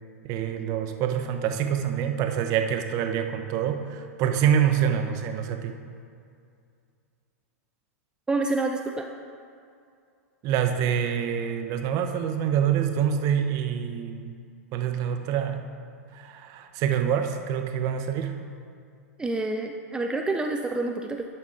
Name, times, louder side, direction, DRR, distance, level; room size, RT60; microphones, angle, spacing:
voice 1, 0.2-5.8 10.4-14.4 14.7-15.6 16.1-18.4, right 8 dB, 45° right, 5 dB, 0.9 m, -26 dB
voice 2, 8.3-9.1 19.2-21.3, right 2 dB, 10° right, 3 dB, 0.5 m, -28 dB
12.0 x 5.4 x 3.9 m, 2.4 s
hypercardioid pair, 105°, 8 cm